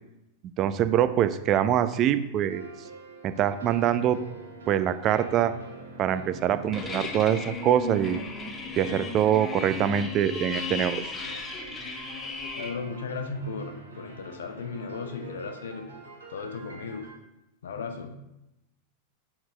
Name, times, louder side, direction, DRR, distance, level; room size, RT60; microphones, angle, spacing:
voice 1, 0.6-2.7 3.2-4.2 4.7-5.5 6.0-8.2 8.8-11.2, right 10 dB, 35° right, 12 dB, 0.4 m, -24 dB
sound 1, 2.5-10.2 11.1-17.1, right 2 dB, 70° right, 1.4 m, -46 dB
sound 2, 6.7-12.7, left 3 dB, 20° left, 1.0 m, -35 dB
voice 2, 12.5-15.9 16.3-17.1 17.6-18.2, left 4 dB, 65° left, 7 dB, 0.7 m, -36 dB
5.9 x 4.2 x 4.9 m, 0.91 s
figure-of-eight pair, 90°, 0 cm